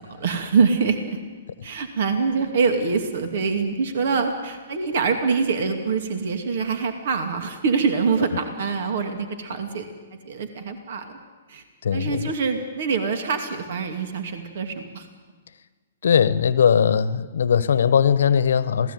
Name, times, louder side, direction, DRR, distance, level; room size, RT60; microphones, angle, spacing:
voice 1, 0.1-1.0 1.6-9.9 10.3-11.2 11.5-11.6 11.9-15.1, right 5 dB, 60° right, 6 dB, 2.6 m, -24 dB
voice 2, 11.8-12.2 16.0-18.9, left 7 dB, 70° left, 16 dB, 1.1 m, -19 dB
27.0 x 18.0 x 9.4 m, 1.4 s
hypercardioid pair, 120°, 0 cm